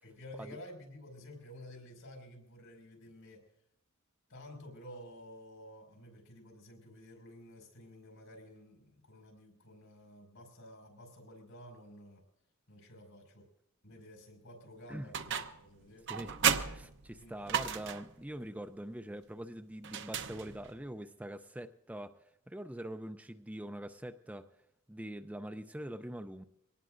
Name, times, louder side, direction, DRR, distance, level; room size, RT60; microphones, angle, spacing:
voice 1, 0.0-3.4 4.3-12.2 12.7-13.5 13.8-16.1 17.2-17.6, left 1 dB, 75° left, 1 dB, 5.5 m, -52 dB
sound 1, 15.1-15.7 16.1-18.2 19.8-20.8, right 8 dB, 55° right, 0.8 m, -34 dB
voice 2, 16.1-24.5 24.9-26.4, right 1 dB, 5° right, 7 dB, 0.5 m, -44 dB
24.0 x 18.5 x 2.6 m, 0.80 s
head